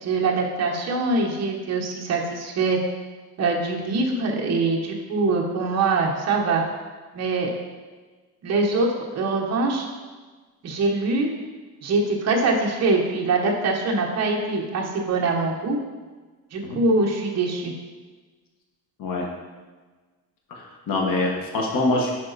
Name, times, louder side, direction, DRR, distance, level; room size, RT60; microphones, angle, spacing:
voice 1, 0.0-2.8 3.4-6.6 7.1-7.5 8.4-9.8 10.6-11.3 11.8-15.8 16.5-17.7, right 3 dB, 45° right, 0 dB, 1.1 m, -23 dB
voice 2, 20.5-22.1, left 2 dB, 60° left, -1 dB, 1.6 m, -25 dB
9.7 x 4.1 x 4.1 m, 1.3 s
cardioid pair, 175°, 38 cm